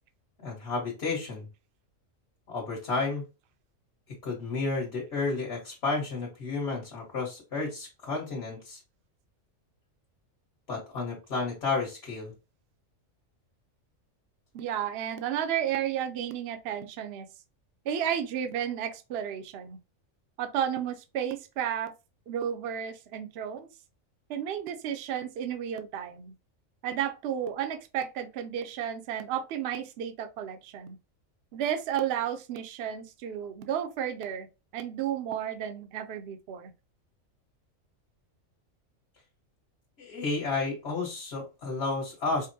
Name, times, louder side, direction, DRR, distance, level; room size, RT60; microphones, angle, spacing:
voice 1, 0.4-1.5 2.5-3.2 4.1-8.8 10.7-12.3 40.0-42.5, left 3 dB, 55° left, 1.6 m, -32 dB
voice 2, 14.5-17.3 17.8-19.8 20.4-21.9 22.3-23.7 24.3-26.3 26.8-31.0 31.5-34.5 34.7-36.7, right 9 dB, 60° right, 0.7 m, -32 dB
5.0 x 2.1 x 2.7 m
omnidirectional pair, 1.4 m